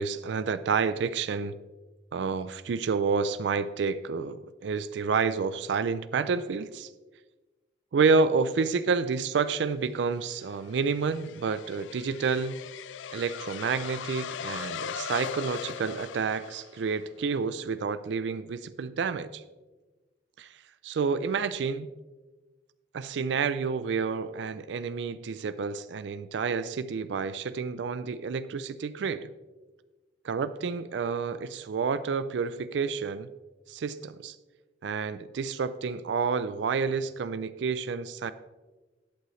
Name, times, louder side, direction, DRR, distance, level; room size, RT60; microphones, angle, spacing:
voice 1, 0.0-1.6 2.1-6.9 7.9-12.6 13.1-19.4 20.4-20.6 20.8-21.9 22.9-29.3 30.2-33.3 33.7-34.4 34.8-38.3, right 5 dB, 75° right, 13 dB, 0.4 m, -29 dB
sound 1, 10.0-17.1, left 8 dB, 85° left, 0.3 m, -39 dB
11.5 x 8.2 x 3.1 m, 1.2 s
head